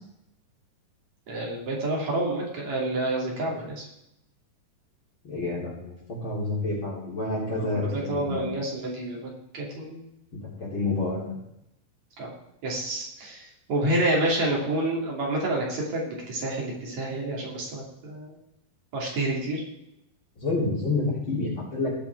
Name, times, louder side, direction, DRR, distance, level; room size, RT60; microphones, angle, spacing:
voice 1, 1.3-3.9 7.5-10.0 12.2-12.3 12.6-18.4 18.9-19.6, right 1 dB, 55° right, -3 dB, 3.8 m, -29 dB
voice 2, 5.2-8.4 10.6-11.2 20.4-21.9, left 2 dB, 35° left, -6 dB, 4.1 m, -28 dB
18.5 x 6.1 x 4.6 m, 0.82 s
omnidirectional pair, 4.1 m